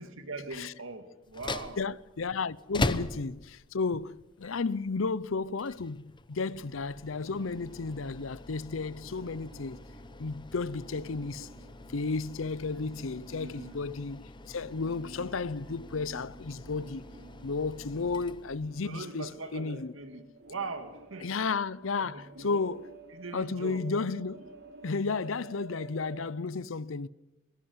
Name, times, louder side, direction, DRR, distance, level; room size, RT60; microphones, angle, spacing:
voice 1, 0.0-1.9 13.3-13.8 15.0-15.4 18.8-21.3 22.0-22.6 23.1-23.9, right 3 dB, 80° right, 2.4 m, -41 dB
sound 1, 1.2-19.0, left 2 dB, 25° left, 0.9 m, -42 dB
voice 2, 1.8-9.8 10.2-11.5 11.9-17.1 17.4-19.9 21.2-22.9 23.3-24.5 24.8-27.1, left 4 dB, 75° left, 0.7 m, -33 dB
sound 2, 6.5-26.2, right 3 dB, 55° right, 4.8 m, -54 dB
21.0 x 16.5 x 9.7 m
head